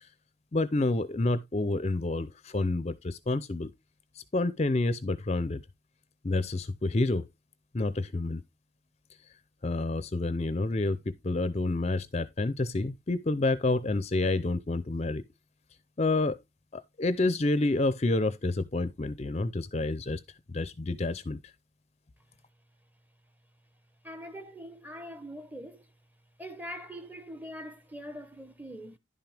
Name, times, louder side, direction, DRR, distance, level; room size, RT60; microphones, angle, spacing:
voice 1, 0.5-3.7 4.3-5.6 6.2-7.3 7.7-8.4 9.6-15.2 16.0-16.4 16.7-20.2 20.5-21.4, left 2 dB, 35° left, 0.5 m, -28 dB
voice 2, 24.0-25.9 26.4-29.0, equal, 10° right, 0.8 m, -43 dB
11.0 x 5.9 x 3.4 m
head